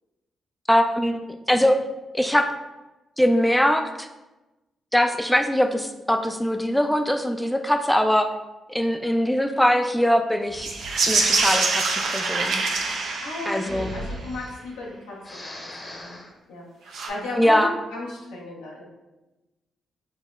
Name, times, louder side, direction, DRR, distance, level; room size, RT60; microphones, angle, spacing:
voice 1, 0.7-1.8 2.1-2.5 3.2-4.1 4.9-8.3 8.7-10.7 11.1-11.8 12.1-12.6 13.5-13.9 17.4-17.7, equal, 5° left, 6 dB, 0.3 m, -21 dB
Breathing, 10.4-11.4 12.0-14.9 15.2-16.3, left 1 dB, 30° left, 0.8 m, -40 dB
sound 1, 10.6-14.1 16.9-17.1, right 3 dB, 70° right, 0.4 m, -25 dB
voice 2, 13.2-16.2 16.5-18.8, left 2 dB, 90° left, -4 dB, 0.7 m, -35 dB
5.2 x 2.1 x 2.3 m, 1.0 s
hypercardioid pair, 45°, 0 cm